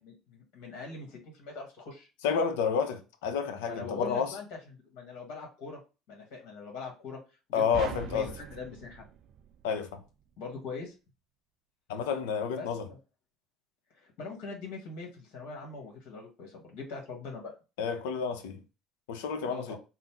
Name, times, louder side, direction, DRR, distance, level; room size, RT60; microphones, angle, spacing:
voice 1, 0.0-2.1 3.6-5.8 6.1-7.2 7.5-7.6 7.9-9.0 10.4-10.9 12.5-12.7 13.9-17.5 19.5-19.8, left 4 dB, 70° left, 1.2 m, -42 dB
voice 2, 2.2-4.3 7.5-8.3 9.6-10.0 11.9-12.9 17.8-18.6 19.1-19.8, left 6 dB, 90° left, 0.6 m, -30 dB
sound 1, 7.7-10.1, right 10 dB, 55° right, 0.3 m, -42 dB
3.9 x 2.0 x 4.3 m
supercardioid pair, 80°, 0 cm